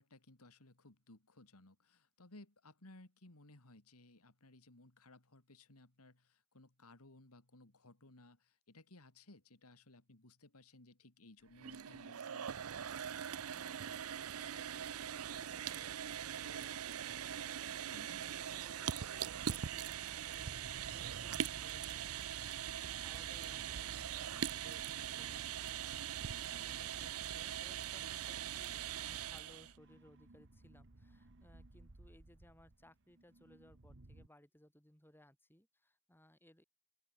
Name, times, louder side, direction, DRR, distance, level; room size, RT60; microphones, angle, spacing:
voice 1, 0.0-12.5 17.9-18.2 23.5-24.0, left 2 dB, 85° left, 2.7 m, -60 dB
sound 1, 11.5-29.7, right 9 dB, 75° right, 0.6 m, -42 dB
voice 2, 13.4-36.6, left 1 dB, 10° left, 7.4 m, -64 dB
sound 2, 20.4-34.3, right 2 dB, 55° right, 1.4 m, -59 dB
open air
head